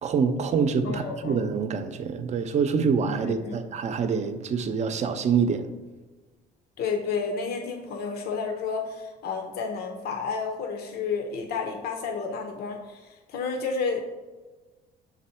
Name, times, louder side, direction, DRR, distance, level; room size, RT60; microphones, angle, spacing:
voice 1, 0.0-5.7, right 6 dB, 45° right, 8 dB, 0.6 m, -26 dB
voice 2, 0.8-1.5 3.2-3.6 6.8-14.0, left 5 dB, 70° left, 3 dB, 0.8 m, -31 dB
6.1 x 4.1 x 4.3 m, 1.2 s
cardioid pair, 110°, 17 cm